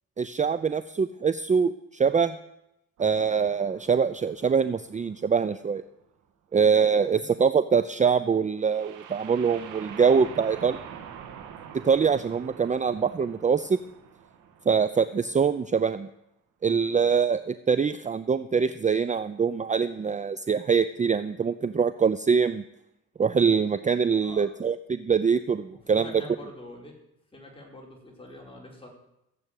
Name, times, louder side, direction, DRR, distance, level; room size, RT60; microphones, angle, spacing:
voice 1, 0.2-2.4 3.0-5.8 6.5-10.8 11.8-13.8 14.7-16.1 16.6-22.6 23.2-26.1, right 6 dB, 25° right, 13 dB, 0.6 m, -24 dB
sound 1, 3.0-5.8 8.6-15.4, right 8 dB, 90° right, 2.1 m, -46 dB
voice 2, 7.0-7.4 24.2-24.5 25.7-27.0 27.3-28.9, left 1 dB, 20° left, -1 dB, 5.0 m, -45 dB
15.0 x 7.9 x 9.1 m, 0.85 s
cardioid pair, 90°, 30 cm